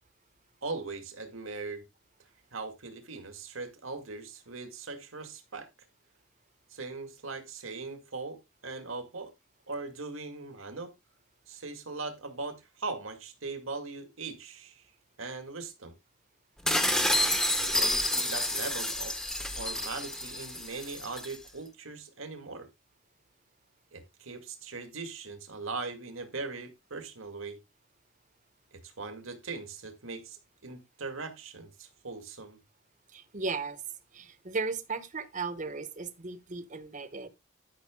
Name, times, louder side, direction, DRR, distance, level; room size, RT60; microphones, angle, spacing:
voice 1, 0.6-1.8 2.5-5.7 6.7-9.3 9.7-10.9 11.5-14.9 15.2-15.9 17.6-19.1 19.5-22.7 23.9-27.6 28.7-32.6, right 3 dB, 80° right, 2.1 m, -40 dB
sound 1, 16.7-21.4, left 1 dB, 5° left, 0.9 m, -29 dB
voice 2, 33.1-33.8 34.1-37.3, right 4 dB, 40° right, 1.0 m, -36 dB
12.5 x 5.9 x 3.7 m
head